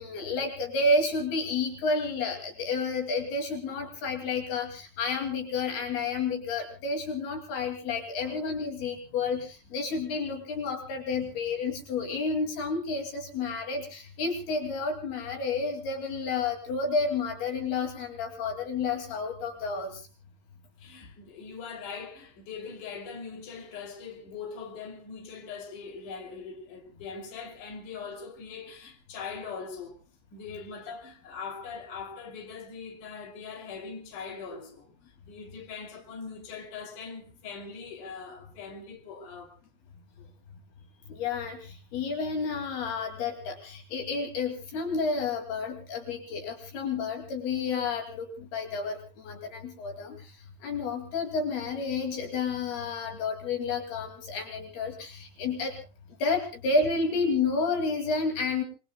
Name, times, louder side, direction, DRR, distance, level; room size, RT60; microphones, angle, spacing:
voice 1, 0.0-20.0 41.1-50.2 50.6-55.7 56.2-58.6, left 4 dB, 75° left, 4.4 m, -30 dB
voice 2, 8.9-9.4 11.2-11.4 20.8-30.0 30.3-34.9 35.3-39.6 40.2-40.3, left 5 dB, 55° left, 4.3 m, -41 dB
28.0 x 21.5 x 2.3 m
omnidirectional pair, 4.6 m